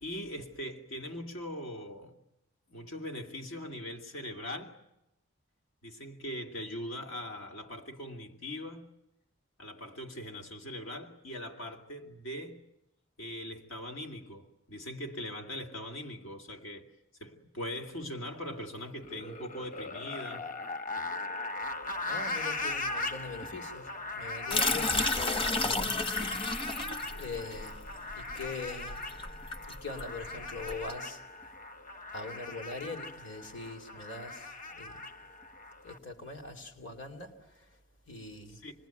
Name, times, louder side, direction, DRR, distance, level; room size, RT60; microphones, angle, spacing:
voice 1, 0.0-2.2 2.7-4.8 5.8-8.9 9.6-12.6 13.2-16.9 17.2-20.5 38.6-38.7, left 1 dB, 85° left, 2.7 m, -41 dB
sound 1, 19.0-36.0, left 2 dB, 40° left, 1.3 m, -39 dB
voice 2, 22.0-27.9 28.1-29.2 29.6-31.5 32.1-35.1 35.8-37.8 38.1-38.6, left 3 dB, 65° left, 2.7 m, -42 dB
sound 2, 24.5-30.9, left 3 dB, 25° left, 0.9 m, -32 dB
28.5 x 21.0 x 9.1 m
head